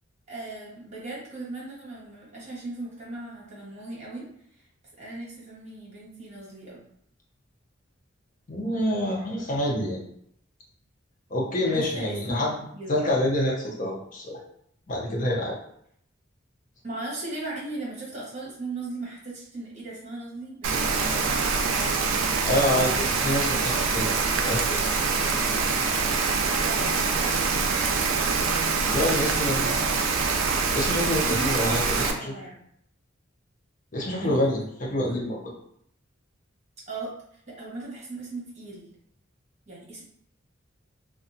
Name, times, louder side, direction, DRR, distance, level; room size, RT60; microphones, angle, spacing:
voice 1, 0.3-4.3 5.0-6.9 11.7-12.5 12.7-13.0 16.8-23.6 26.2-27.4 29.0-29.9 31.0-32.6 34.2-34.5 35.1-35.2 36.9-37.1 37.5-38.9 39.7-40.0, right 2 dB, 35° right, -5 dB, 1.1 m, -38 dB
voice 2, 8.5-10.0 11.3-12.6 12.9-14.4 14.9-15.6 22.4-24.1 24.4-24.8 28.8-29.7 30.7-32.3 33.9-35.5, left 1 dB, 40° left, -3 dB, 0.7 m, -27 dB
Rain, 20.6-32.1, right 4 dB, 90° right, 0.4 m, -25 dB
2.7 x 2.3 x 2.6 m, 0.69 s
head